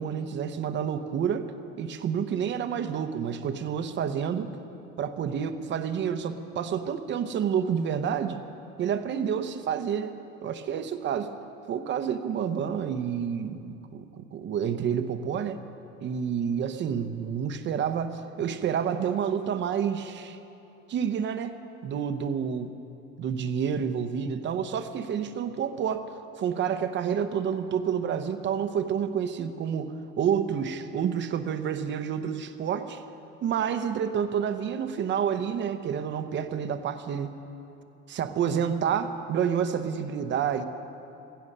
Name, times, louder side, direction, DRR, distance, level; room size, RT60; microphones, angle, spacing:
voice 1, 0.0-1.5 1.8-4.5 5.0-8.4 8.8-10.2 10.4-11.3 11.7-15.6 16.0-20.4 20.9-21.6 21.8-22.7 23.2-26.1 26.4-33.0 33.4-37.4 38.1-40.6, right 8 dB, 40° right, 9 dB, 0.8 m, -29 dB
16.5 x 16.0 x 5.4 m, 2.8 s
cardioid pair, 160°, 30 cm